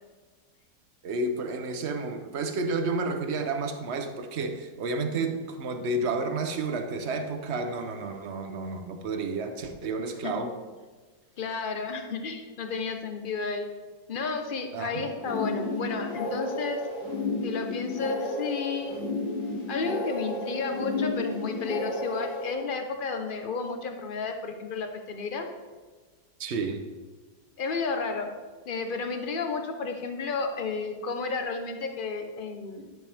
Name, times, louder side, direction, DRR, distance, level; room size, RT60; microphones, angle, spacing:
voice 1, 1.0-10.5 14.7-15.1 26.4-26.8, right 3 dB, 50° right, 6 dB, 0.8 m, -31 dB
voice 2, 11.4-13.7 14.1-16.8 17.4-19.0 19.7-25.5 27.6-28.3 28.7-32.9, left 4 dB, 45° left, 5 dB, 0.7 m, -32 dB
sound 1, 15.2-22.5, left 2 dB, 85° left, 2.4 m, -32 dB
11.5 x 7.7 x 3.5 m, 1.4 s
omnidirectional pair, 2.0 m